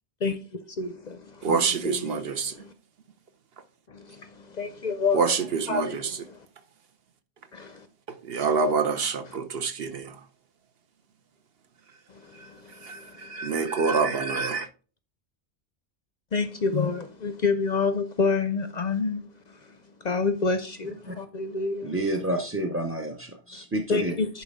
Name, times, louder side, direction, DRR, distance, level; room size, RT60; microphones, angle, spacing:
voice 1, 0.2-2.7 3.9-5.4 5.7-6.5 7.5-7.9 8.4-8.6 12.1-13.6 16.3-22.0 23.5-24.4, left 4 dB, 50° left, 0.6 m, -29 dB
voice 2, 1.4-2.5 5.1-6.1 8.1-10.2 12.4-12.5 12.8-14.7, right 5 dB, 60° right, 1.0 m, -26 dB
voice 3, 21.8-24.1, right 1 dB, 15° right, 0.5 m, -29 dB
10.5 x 4.5 x 3.6 m
omnidirectional pair, 1.2 m